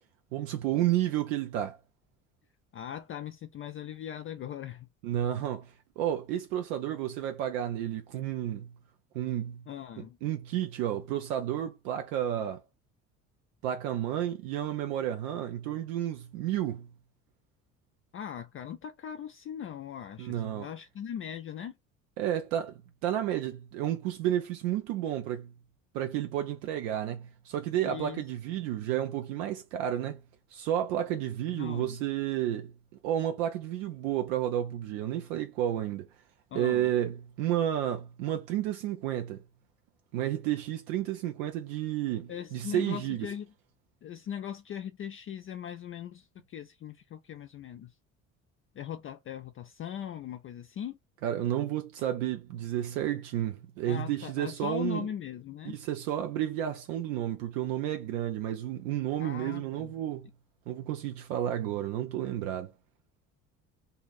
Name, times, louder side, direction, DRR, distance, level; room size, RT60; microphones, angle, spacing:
voice 1, 0.3-1.8 5.0-8.7 9.1-9.6 10.0-12.6 13.6-16.9 20.2-20.7 22.2-25.5 25.9-30.2 30.5-32.7 33.0-36.1 36.5-39.4 40.1-43.3 51.2-55.1 55.7-60.3 60.7-62.7, right 11 dB, 70° right, 0.6 m, -31 dB
voice 2, 2.7-4.9 9.7-10.2 18.1-21.8 27.8-28.2 31.5-32.0 36.5-36.9 42.3-43.5 44.0-47.9 48.8-51.0 53.9-55.8 59.2-59.9, left 9 dB, 35° left, 0.4 m, -39 dB
2.7 x 2.5 x 4.0 m
hypercardioid pair, 60°, 41 cm